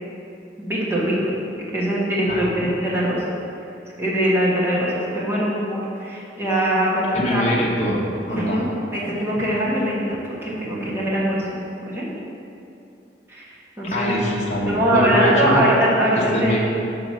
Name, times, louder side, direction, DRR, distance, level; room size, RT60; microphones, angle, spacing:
voice 1, 0.6-1.1 1.7-3.2 4.0-7.0 7.3-7.5 8.3-11.5 11.8-12.1 13.3-14.1 14.7-16.6, right 1 dB, 15° right, -7 dB, 1.4 m, -22 dB
voice 2, 2.3-2.7 7.1-8.0 8.3-8.6 13.8-15.6 16.3-16.6, left 1 dB, 40° left, -4 dB, 1.1 m, -23 dB
6.0 x 3.9 x 6.2 m, 2.7 s
head